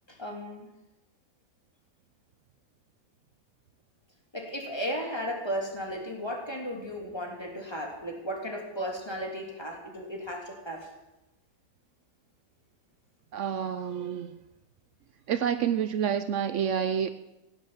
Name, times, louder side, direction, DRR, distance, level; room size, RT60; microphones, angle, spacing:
voice 1, 0.1-0.7 4.3-10.9, equal, 15° left, 0 dB, 3.2 m, -35 dB
voice 2, 13.3-14.3 15.3-17.1, right 8 dB, 70° right, 11 dB, 0.7 m, -28 dB
16.0 x 10.0 x 8.0 m, 0.96 s
omnidirectional pair, 2.0 m